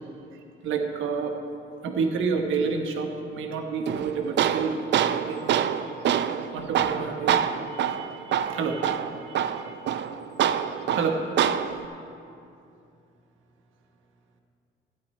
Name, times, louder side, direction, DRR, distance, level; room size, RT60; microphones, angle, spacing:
voice 1, 0.6-1.3 1.8-5.5 6.5-9.7 10.9-11.2, right 5 dB, 80° right, 4 dB, 1.2 m, -29 dB
Tools, 3.9-11.9, right 9 dB, 60° right, 0.5 m, -26 dB
12.5 x 10.0 x 4.3 m, 2.6 s
cardioid pair, 90°, 20 cm